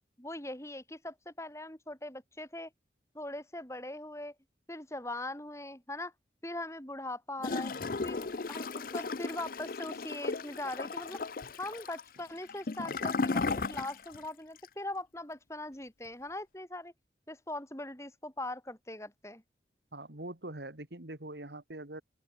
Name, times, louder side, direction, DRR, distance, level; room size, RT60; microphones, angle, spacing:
voice 1, 0.2-2.7 3.1-4.3 4.7-6.1 6.4-7.7 8.0-11.2 11.6-16.9 17.3-19.4, left 1 dB, 15° left, 4.7 m, -41 dB
Gurgling / Toilet flush, 7.4-14.3 14.6-14.7, left 4 dB, 50° left, 0.6 m, -35 dB
voice 2, 19.9-22.0, right 1 dB, 70° right, 2.6 m, -43 dB
open air
head